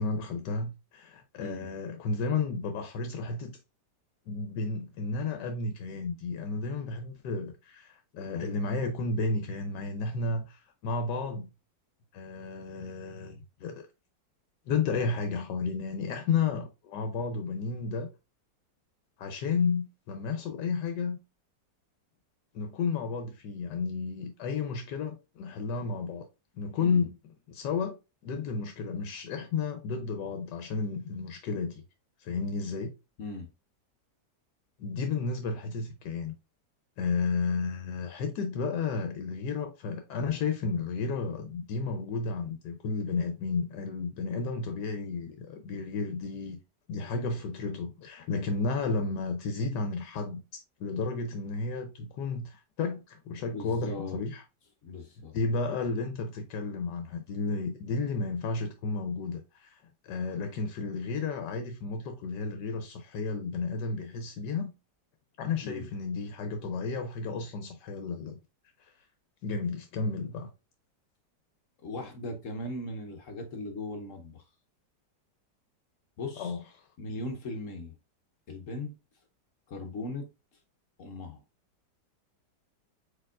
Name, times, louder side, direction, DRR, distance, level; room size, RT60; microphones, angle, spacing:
voice 1, 0.0-3.6 4.3-11.5 12.1-13.9 14.7-18.1 19.2-21.2 22.5-26.3 26.6-27.2 27.5-28.0 28.2-31.8 32.2-32.9 34.8-36.3 37.0-46.6 46.9-54.4 55.3-64.7 65.4-68.4 68.8-68.9 69.4-70.5 76.4-76.6, left 4 dB, 75° left, 1.2 m, -32 dB
voice 2, 1.4-1.7 26.8-27.0 33.2-33.5 53.5-54.2 54.8-55.4 65.6-65.9 71.8-74.4 76.2-76.6 77.0-78.0 78.5-78.9 79.7-80.3 81.0-81.4, left 2 dB, 55° left, 1.0 m, -38 dB
4.5 x 4.5 x 2.4 m
omnidirectional pair, 1.9 m